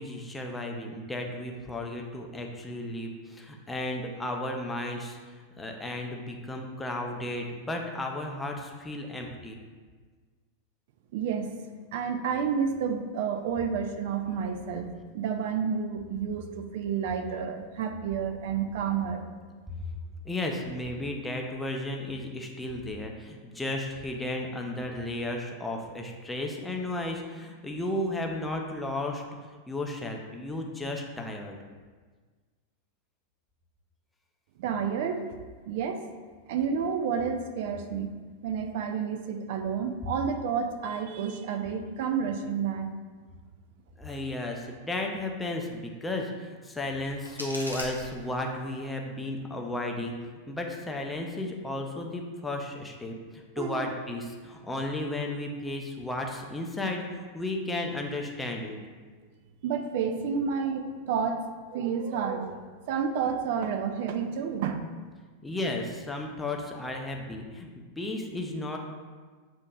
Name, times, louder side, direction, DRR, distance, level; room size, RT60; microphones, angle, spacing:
voice 1, 0.0-9.6 20.2-29.2 29.7-31.6 44.0-58.8 65.4-68.8, left 1 dB, 10° left, 1 dB, 0.5 m, -34 dB
voice 2, 11.1-11.5 11.9-14.9 15.1-19.3 34.6-35.2 35.6-36.0 36.5-38.1 38.4-42.9 53.6-53.9 59.6-61.4 61.7-62.6 62.9-64.8, right 6 dB, 50° right, 7 dB, 0.4 m, -30 dB
sound 1, 46.8-48.8, equal, 90° right, 0.6 m, -41 dB
6.8 x 2.7 x 2.3 m, 1.5 s
figure-of-eight pair, 90°, 0 cm